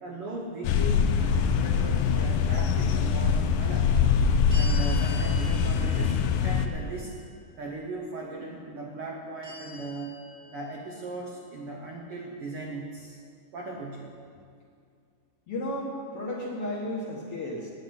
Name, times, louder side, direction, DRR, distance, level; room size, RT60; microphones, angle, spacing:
voice 1, 0.0-3.9 4.5-7.1 7.6-10.2 10.5-13.2 13.5-14.1, right 2 dB, 80° right, 0 dB, 1.2 m, -38 dB
sound 1, 0.6-6.7, left 6 dB, 80° left, 2.3 m, -24 dB
sound 2, 4.5-7.6 9.4-11.2, left 1 dB, 30° right, 1.2 m, -45 dB
voice 2, 15.5-17.7, left 1 dB, 55° left, -2 dB, 1.8 m, -33 dB
9.5 x 8.2 x 9.4 m, 2.3 s
omnidirectional pair, 4.0 m